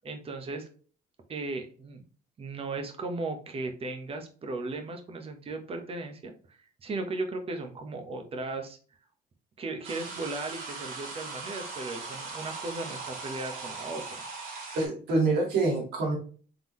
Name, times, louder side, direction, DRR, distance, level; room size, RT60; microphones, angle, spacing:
voice 1, 0.0-0.7 1.3-2.0 2.4-8.8 9.6-14.2, right 3 dB, 35° right, 5 dB, 1.0 m, -36 dB
sound 1, 9.8-14.9, right 4 dB, 55° right, 2.3 m, -39 dB
voice 2, 14.7-16.2, right 3 dB, 80° right, -1 dB, 2.1 m, -26 dB
3.8 x 3.7 x 3.0 m, 0.40 s
cardioid pair, 110°, 17 cm